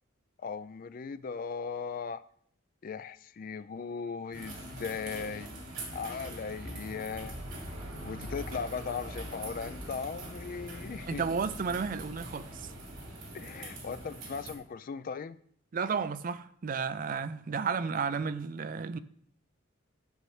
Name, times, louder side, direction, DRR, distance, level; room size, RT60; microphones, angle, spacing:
voice 1, 0.4-2.2 2.8-5.5 5.9-7.4 8.0-11.2 13.3-15.4, left 5 dB, 40° left, 0.3 m, -38 dB
sound 1, 4.3-14.6, right 1 dB, 70° right, 2.8 m, -42 dB
voice 2, 11.1-12.7 15.7-19.0, right 5 dB, 40° right, 0.4 m, -32 dB
10.5 x 6.5 x 3.2 m
head